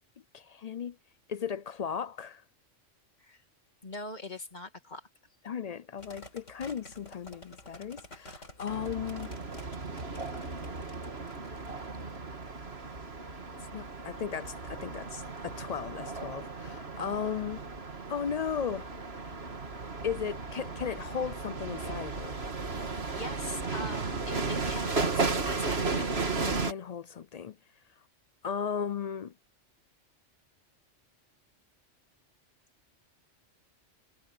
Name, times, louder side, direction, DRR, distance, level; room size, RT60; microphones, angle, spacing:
voice 1, 0.3-1.0 1.3-2.4 5.4-9.3 13.7-17.6 18.1-18.9 20.0-22.4 26.5-27.6 28.4-29.3, left 7 dB, 60° left, 0.4 m, -36 dB
voice 2, 3.8-5.1 23.2-26.1, left 2 dB, 35° left, 2.3 m, -41 dB
sound 1, 6.0-13.0, left 1 dB, 85° left, 4.6 m, -51 dB
sound 2, 8.7-26.7, right 4 dB, 55° right, 2.2 m, -35 dB
omnidirectional pair, 1.2 m